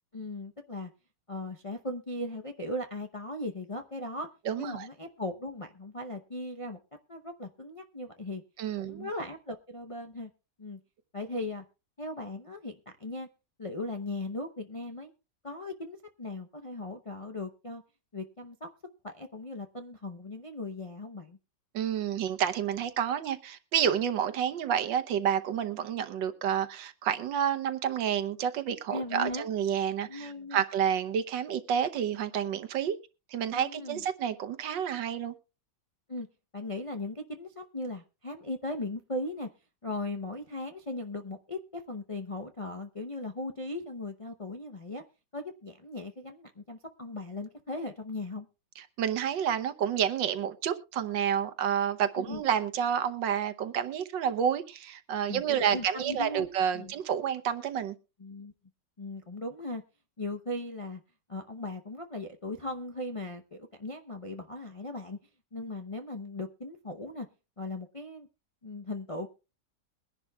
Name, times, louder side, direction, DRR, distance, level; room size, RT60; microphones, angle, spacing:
voice 1, 0.1-0.9 1.3-4.3 4.6-6.8 7.1-8.4 8.8-10.3 10.6-10.8 11.1-11.6 12.0-13.3 13.6-15.1 15.4-17.8 18.1-18.7 19.0-21.4 28.9-29.5 30.1-30.6 33.5-34.0 36.1-36.3 36.5-39.5 39.8-45.0 45.3-48.5 52.2-52.4 55.3-56.5 56.7-56.9 58.2-58.5 59.0-59.8 60.2-61.0 61.3-65.2 65.5-67.3 67.6-68.3 68.6-69.3, left 2 dB, 40° left, 0.4 m, -38 dB
voice 2, 4.5-4.9 8.6-9.1 21.7-33.0 33.3-35.3 49.0-58.0, right 8 dB, 85° right, 1.6 m, -29 dB
22.0 x 10.5 x 2.3 m
omnidirectional pair, 1.9 m